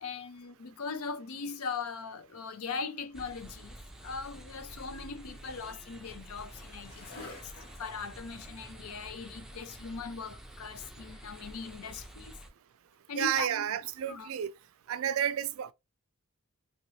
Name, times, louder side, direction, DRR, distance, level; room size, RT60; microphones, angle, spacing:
voice 1, 0.0-3.8 4.0-7.5 7.8-12.4 13.1-13.7 14.1-14.3, left 5 dB, 85° left, 0.6 m, -40 dB
sound 1, 3.1-12.5, right 1 dB, 5° right, 0.5 m, -49 dB
Skateboard, 4.0-14.5, left 2 dB, 55° left, 1.4 m, -57 dB
voice 2, 13.2-14.5 14.9-15.7, right 10 dB, 65° right, 0.3 m, -31 dB
3.1 x 2.9 x 2.8 m
head